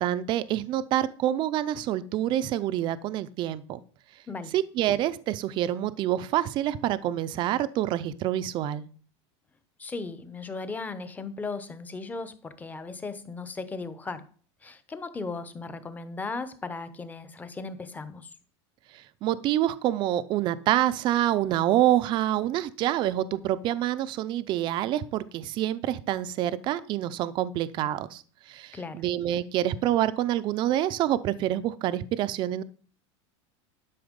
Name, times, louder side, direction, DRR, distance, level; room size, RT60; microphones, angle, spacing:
voice 1, 0.0-3.8 4.5-8.9 18.9-28.2 28.5-32.6, right 12 dB, 30° right, 0.5 m, -27 dB
voice 2, 9.8-14.3 14.6-18.3 28.7-29.0, left 3 dB, 10° left, 0.8 m, -37 dB
12.0 x 5.7 x 5.2 m
supercardioid pair, 155°, 15 cm